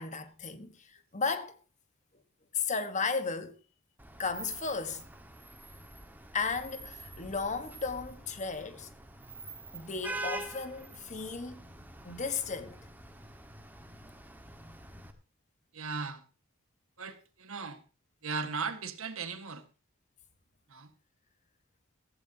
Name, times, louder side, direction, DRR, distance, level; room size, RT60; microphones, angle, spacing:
voice 1, 0.0-1.6 2.5-3.5 4.2-5.0 6.3-8.9 9.7-11.6 12.0-12.8, left 4 dB, 35° left, 1.3 m, -34 dB
Vehicle horn car horn honking / Traffic noise roadway noise, 4.0-15.1, right 2 dB, 10° right, 1.5 m, -45 dB
voice 2, 15.7-16.3 17.0-17.8 18.2-19.7 20.7-20.9, right 5 dB, 75° right, 1.6 m, -37 dB
15.5 x 15.0 x 2.8 m
head